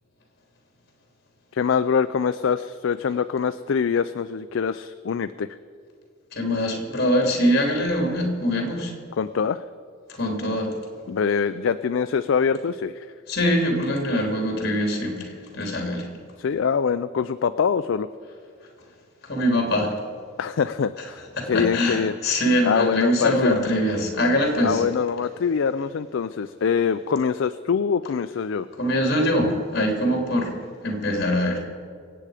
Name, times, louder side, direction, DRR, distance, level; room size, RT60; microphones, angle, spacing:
voice 1, 1.5-5.6 9.2-9.6 11.1-13.1 16.4-18.1 20.4-22.1 22.6-23.6 24.6-28.7, left 6 dB, 70° left, 12 dB, 0.4 m, -24 dB
voice 2, 6.3-8.9 10.2-10.7 13.3-16.1 19.2-19.9 21.4-24.8 28.8-30.5 30.8-31.6, equal, 55° left, 2 dB, 3.1 m, -23 dB
25.0 x 8.8 x 5.0 m, 2.2 s
head